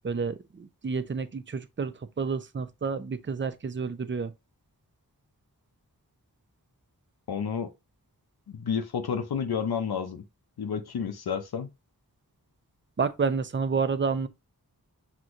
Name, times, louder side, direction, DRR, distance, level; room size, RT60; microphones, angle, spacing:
voice 1, 0.0-4.3 13.0-14.3, right 5 dB, 30° right, 0.5 m, -30 dB
voice 2, 7.3-7.7 8.5-10.2 10.6-11.7, left 7 dB, 85° left, 0.6 m, -30 dB
6.1 x 2.9 x 2.5 m
wide cardioid pair, 45°, 37 cm